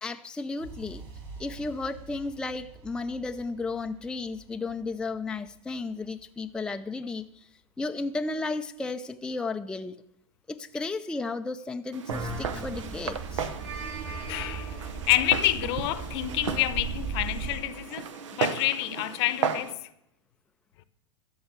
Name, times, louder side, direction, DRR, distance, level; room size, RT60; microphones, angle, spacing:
voice 1, 0.0-1.0 1.4-7.5 7.8-10.0 10.5-13.5, left 3 dB, 5° left, 0.4 m, -34 dB
sound 1, 0.6-8.5, right 2 dB, 55° right, 2.5 m, -49 dB
Walk footsteps, 11.9-19.7, right 6 dB, 80° right, 0.9 m, -35 dB
sound 2, 12.1-17.5, right 4 dB, 35° right, 5.7 m, -36 dB
voice 2, 13.8-18.1 18.3-19.8, left 15 dB, 60° left, 0.8 m, -28 dB
14.0 x 4.7 x 7.9 m
hypercardioid pair, 110°, 16 cm